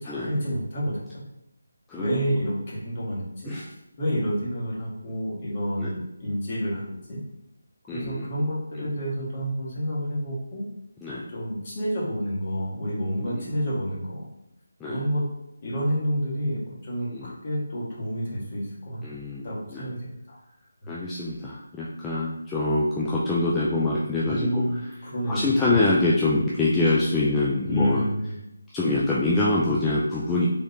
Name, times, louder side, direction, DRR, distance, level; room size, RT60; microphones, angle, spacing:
voice 1, 0.0-1.2 1.9-3.5 4.0-7.2 7.9-10.6 11.3-14.2 14.8-15.3 15.6-19.0 19.4-20.4 20.8-21.0 24.3-25.8 27.6-28.3, equal, 40° left, -6 dB, 1.5 m, -29 dB
voice 2, 7.9-8.3 8.8-8.9 11.0-11.3 13.1-13.5 14.8-15.0 17.0-17.3 19.0-19.9 20.9-24.6 25.3-28.0 28.7-30.5, left 2 dB, 10° left, -7 dB, 0.3 m, -25 dB
3.6 x 3.3 x 2.7 m, 0.86 s
figure-of-eight pair, 165°, 0 cm